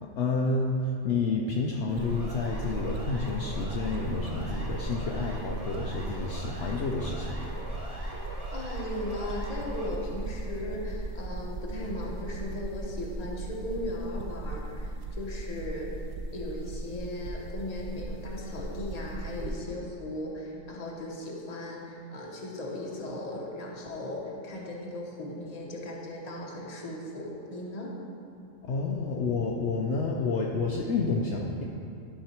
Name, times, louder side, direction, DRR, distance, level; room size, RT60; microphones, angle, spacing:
voice 1, 0.0-7.3 28.6-31.6, left 3 dB, 65° left, -1 dB, 0.9 m, -29 dB
Siren, 1.9-9.9, right 1 dB, 30° right, 1.2 m, -43 dB
sound 1, 1.9-19.5, right 2 dB, 60° right, 0.8 m, -38 dB
voice 2, 8.5-15.9 16.3-27.9, left 1 dB, 30° left, -2 dB, 1.1 m, -37 dB
11.0 x 4.8 x 4.4 m, 2.6 s
omnidirectional pair, 1.4 m